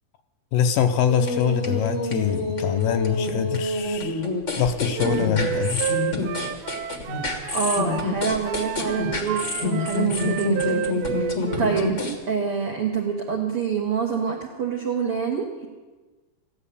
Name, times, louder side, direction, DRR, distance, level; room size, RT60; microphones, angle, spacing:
voice 1, 0.5-4.2 4.6-5.8, left 8 dB, 75° left, 7 dB, 2.2 m, -24 dB
sound 1, 1.1-12.1, left 2 dB, 50° left, 0.8 m, -27 dB
Wind instrument woodwind instrument, 4.9-8.1 8.4-11.9, right 10 dB, 85° right, 2.6 m, -30 dB
voice 2, 7.5-10.8 11.6-15.7, right 6 dB, 70° right, 0 dB, 1.4 m, -26 dB
15.0 x 10.5 x 8.3 m, 1.3 s
omnidirectional pair, 4.3 m